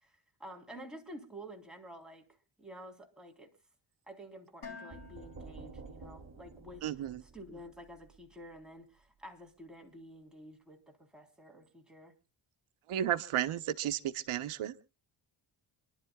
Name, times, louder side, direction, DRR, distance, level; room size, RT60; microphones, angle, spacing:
voice 1, 0.0-2.3 2.6-3.5 4.1-6.9 7.2-12.1, equal, ahead, 3.5 m, -50 dB
Dishes pots and pans, 4.6-6.7, left 5 dB, 55° left, 4.0 m, -51 dB
sound 1, 4.9-8.6, right 4 dB, 35° right, 2.8 m, -51 dB
voice 2, 6.8-7.2 12.9-14.8, right 11 dB, 90° right, 1.0 m, -33 dB
28.0 x 11.5 x 2.3 m
cardioid pair, 110°, 48 cm